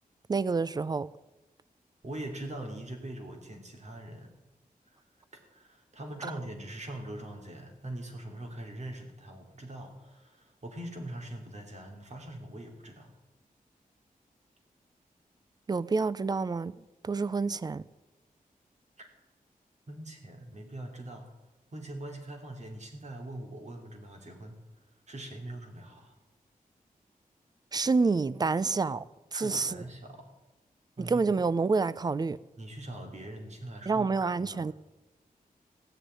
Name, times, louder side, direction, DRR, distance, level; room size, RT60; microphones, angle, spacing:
voice 1, 0.3-1.1 15.7-16.8 17.0-17.8 27.7-29.0 29.3-29.8 31.0-32.4 33.9-34.7, right 4 dB, 25° right, 0.4 m, -28 dB
voice 2, 2.0-4.3 5.3-13.1 19.0-19.1 19.9-21.2 21.7-24.6 25.1-26.1 29.3-30.3 31.0-31.2 32.6-34.1 34.4-34.7, right 1 dB, 50° right, 3.1 m, -42 dB
16.0 x 6.7 x 9.8 m
wide cardioid pair, 125°, 15 cm